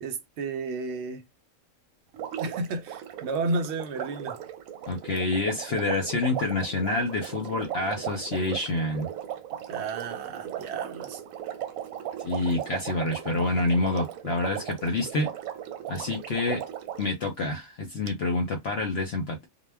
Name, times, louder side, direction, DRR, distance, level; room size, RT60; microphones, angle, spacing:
voice 1, 0.0-1.2 2.4-4.4 9.7-11.2, right 3 dB, 65° right, 0.7 m, -32 dB
Water, 2.1-17.1 18.1-18.2, right 10 dB, 90° right, 1.0 m, -37 dB
voice 2, 4.9-9.1 12.2-15.3 15.9-16.6 17.0-19.5, left 2 dB, 60° left, 0.7 m, -27 dB
2.2 x 2.1 x 3.3 m
omnidirectional pair, 1.4 m